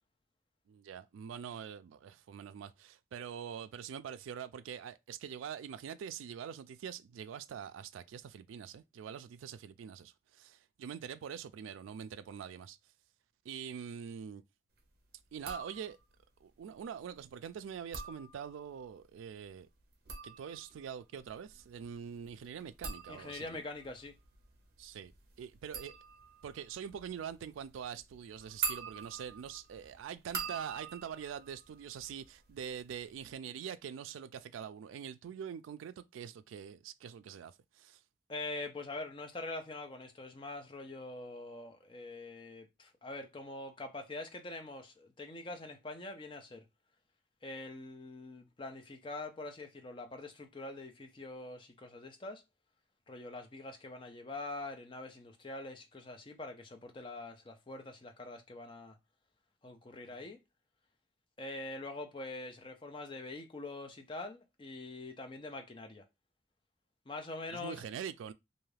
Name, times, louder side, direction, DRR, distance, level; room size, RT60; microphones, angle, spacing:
voice 1, 0.7-12.8 13.4-14.4 15.3-16.0 16.4-19.7 20.2-23.6 24.8-25.1 25.4-25.9 26.4-38.0 60.1-60.3 67.5-68.3, right 8 dB, 90° right, 0.3 m, -44 dB
sound 1, 15.3-16.2 17.7-18.8 19.8-32.5 32.8-33.3, right 5 dB, 55° right, 0.6 m, -44 dB
voice 2, 23.1-24.1 38.3-46.6 47.4-52.4 53.1-59.0 59.6-60.4 61.4-66.0 67.1-67.8, left 2 dB, 25° left, 0.5 m, -44 dB
2.6 x 2.4 x 3.2 m
head